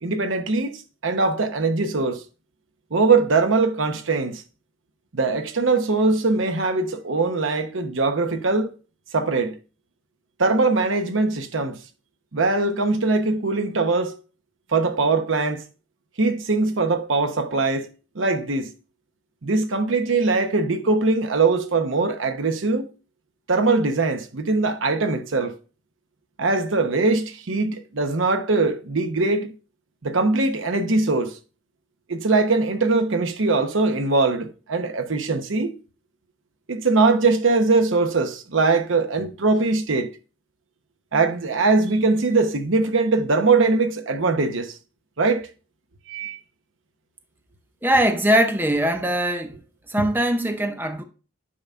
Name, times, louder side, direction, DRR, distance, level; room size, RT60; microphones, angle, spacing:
voice 1, 0.0-2.2 2.9-4.4 5.1-8.7 9.1-9.6 10.4-11.8 12.3-14.2 14.7-15.6 16.2-17.9 18.1-18.7 19.4-22.9 23.5-25.5 26.4-29.5 30.0-31.4 32.1-35.7 36.7-40.1 41.1-44.8 45.2-45.5 46.1-46.4, right 3 dB, 85° right, 0.9 m, -21 dB
voice 2, 47.8-49.6 49.9-51.0, right 1 dB, 10° right, 0.6 m, -21 dB
8.5 x 5.7 x 2.4 m
head